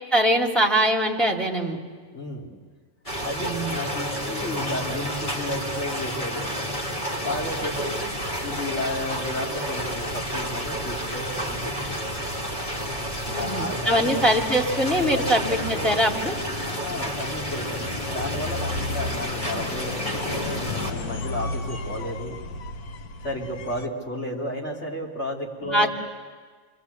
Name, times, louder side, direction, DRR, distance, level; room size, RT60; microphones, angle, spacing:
voice 1, 0.1-1.8 3.4-3.7 13.3-16.3 25.6-25.9, equal, ahead, 0 dB, 2.6 m, -22 dB
voice 2, 2.1-2.5 3.2-6.5 7.2-8.1 8.4-12.2 13.3-14.2 14.9-15.9 16.8-22.4 23.2-25.9, left 1 dB, 45° left, -2 dB, 4.0 m, -33 dB
sound 1, 3.1-20.9, equal, 20° left, 2.6 m, -30 dB
sound 2, 7.3-23.9, left 3 dB, 75° left, 1.6 m, -36 dB
29.0 x 22.5 x 8.4 m, 1.5 s
omnidirectional pair, 1.6 m